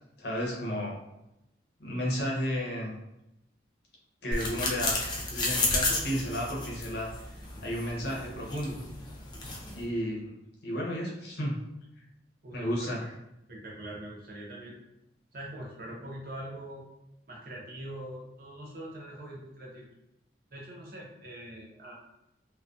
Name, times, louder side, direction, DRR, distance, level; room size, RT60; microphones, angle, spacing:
voice 1, 0.2-1.0 1.8-2.9 4.2-7.1 7.6-8.8 9.7-10.3 10.6-11.6 12.5-13.0, equal, 65° left, -3 dB, 0.7 m, -32 dB
sound 1, 4.3-9.8, left 2 dB, 25° left, 0.3 m, -32 dB
voice 2, 12.4-13.1 13.5-14.8 15.3-16.9 17.3-19.9 20.5-21.9, right 1 dB, 50° right, -3 dB, 0.6 m, -43 dB
2.3 x 2.2 x 2.5 m, 0.87 s
head